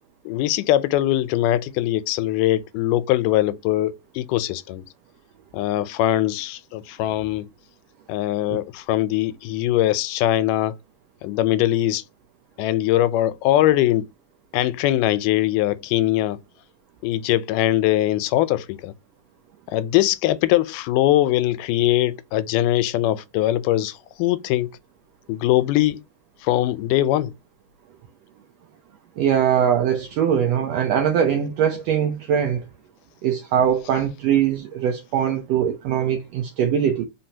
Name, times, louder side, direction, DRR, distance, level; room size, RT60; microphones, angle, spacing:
voice 1, 0.3-4.8 5.5-7.5 8.1-10.7 11.2-12.0 12.6-14.1 14.5-16.4 17.0-18.9 19.7-24.7 25.3-26.0 26.4-27.3, left 14 dB, 90° left, 2.1 m, -21 dB
voice 2, 29.2-32.7 33.2-37.0, right 8 dB, 80° right, 1.5 m, -21 dB
4.5 x 3.9 x 2.7 m
omnidirectional pair, 3.7 m